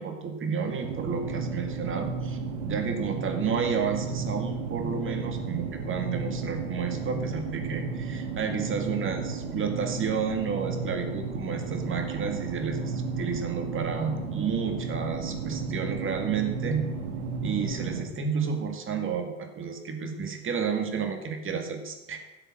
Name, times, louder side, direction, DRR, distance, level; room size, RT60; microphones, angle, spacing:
voice 1, 0.0-2.4 2.6-16.8 17.4-22.2, right 6 dB, 25° right, 5 dB, 2.2 m, -31 dB
sound 1, 0.8-18.0, right 4 dB, 70° right, 2.7 m, -33 dB
12.0 x 7.9 x 6.3 m, 1.1 s
hypercardioid pair, 100°, 44 cm